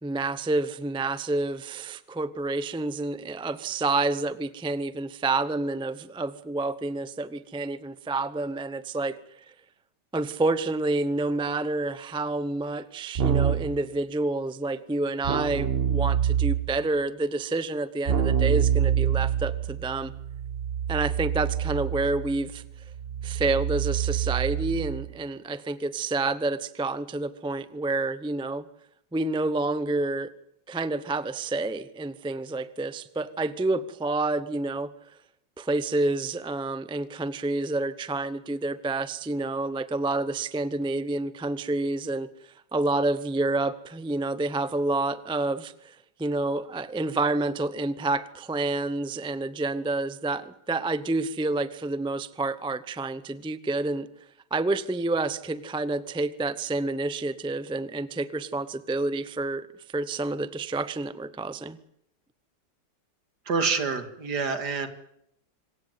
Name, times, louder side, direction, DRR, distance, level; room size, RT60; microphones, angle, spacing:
voice 1, 0.0-9.2 10.1-20.1 20.9-22.6 23.2-28.7 29.1-30.3 30.7-34.9 35.6-54.1 54.5-61.8, right 2 dB, 5° right, 14 dB, 0.4 m, -29 dB
Keyboard (musical), 13.2-13.8 15.2-16.8 18.1-25.1, right 9 dB, 40° right, 1.1 m, -26 dB
voice 2, 63.5-64.9, right 5 dB, 70° right, 8 dB, 2.6 m, -27 dB
26.5 x 15.5 x 9.3 m, 0.77 s
omnidirectional pair, 1.9 m